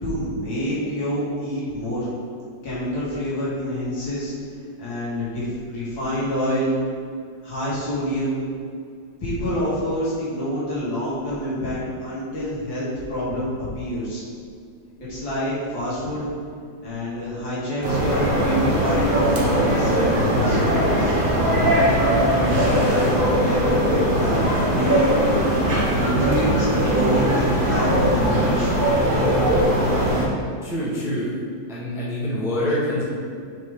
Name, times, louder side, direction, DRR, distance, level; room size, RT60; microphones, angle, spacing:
voice 1, 0.0-2.1 2.6-4.3 4.8-6.8 7.4-8.4 9.2-13.5 13.7-14.2 15.0-16.3 16.8-21.1 22.3-25.1 25.8-28.8, equal, 80° left, -9 dB, 2.7 m, -27 dB
sound 1, 17.8-30.3, right 1 dB, 40° right, 0.8 m, -20 dB
voice 2, 30.6-31.3 31.7-33.0, left 1 dB, ahead, -7 dB, 0.9 m, -25 dB
7.5 x 4.8 x 3.7 m, 2.2 s
omnidirectional pair, 2.1 m